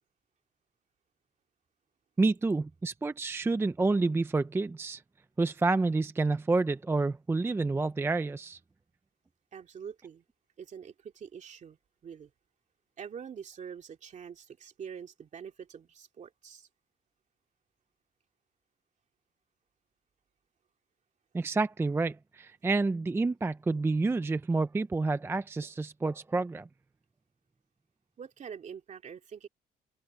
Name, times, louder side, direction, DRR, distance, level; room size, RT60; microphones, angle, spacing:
voice 1, 2.2-5.0 5.4-8.6 21.3-26.7, right 3 dB, 15° right, 0.4 m, -29 dB
voice 2, 9.5-10.2 10.6-12.3 13.0-16.7 28.2-29.5, right 7 dB, 50° right, 2.4 m, -45 dB
cardioid pair, 145°, 16 cm